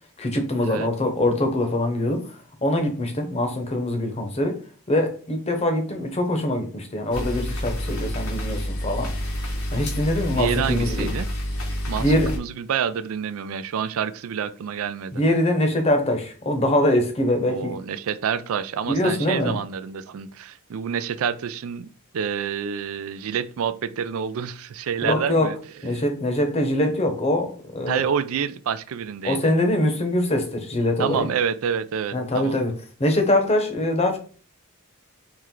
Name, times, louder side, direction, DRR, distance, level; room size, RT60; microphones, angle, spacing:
voice 1, 0.2-4.6 4.9-9.1 9.7-11.1 12.0-12.3 15.1-17.8 18.9-19.5 25.0-25.5 25.8-28.0 29.2-31.3 32.1-32.7 33.0-34.2, left 1 dB, 30° left, 5 dB, 0.8 m, -23 dB
sound 1, 7.1-12.4, equal, 80° left, 1.3 m, -28 dB
voice 2, 10.3-11.3 11.9-15.1 17.5-21.9 22.1-25.6 25.9-26.0 27.9-29.5 31.0-32.6, right 7 dB, 70° right, 13 dB, 0.4 m, -28 dB
4.4 x 3.2 x 3.7 m, 0.40 s
head